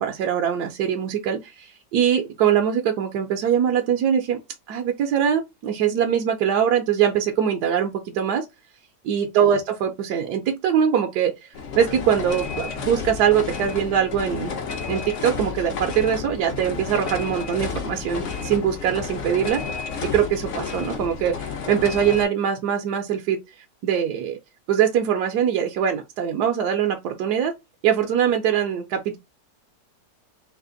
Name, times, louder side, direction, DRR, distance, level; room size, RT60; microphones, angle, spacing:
voice 1, 0.0-4.4 4.7-8.5 9.0-11.3 11.8-14.5 14.9-19.6 20.0-23.4 23.8-24.4 24.7-27.5 27.8-29.2, right 8 dB, 70° right, 1.0 m, -22 dB
sound 1, 11.5-22.2, left 5 dB, 60° left, 0.8 m, -31 dB
3.3 x 2.8 x 3.7 m
omnidirectional pair, 1.9 m